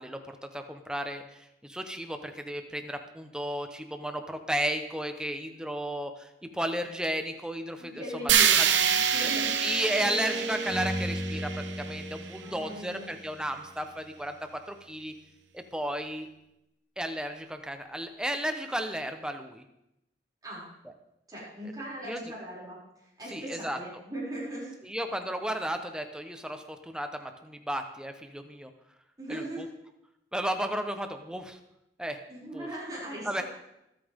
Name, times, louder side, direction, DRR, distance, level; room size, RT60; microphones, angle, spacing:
voice 1, 0.0-8.7 9.2-11.5 11.8-14.3 14.7-15.1 15.5-16.3 17.0-19.6 22.0-22.2 23.3-23.8 24.8-28.7 29.3-29.7 30.3-31.6 32.0-32.2 32.5-32.7 33.2-33.4, right 1 dB, 5° right, 6 dB, 1.0 m, -34 dB
voice 2, 7.8-9.5 12.4-13.1 20.4-20.6 21.3-22.8 23.2-24.7 29.2-29.6 32.3-33.4, right 1 dB, 20° right, -7 dB, 6.5 m, -39 dB
sound 1, 8.3-12.4, right 9 dB, 90° right, 1.0 m, -26 dB
sound 2, 8.6-13.8, right 1 dB, 40° right, 3.9 m, -36 dB
24.0 x 9.0 x 3.7 m, 0.86 s
head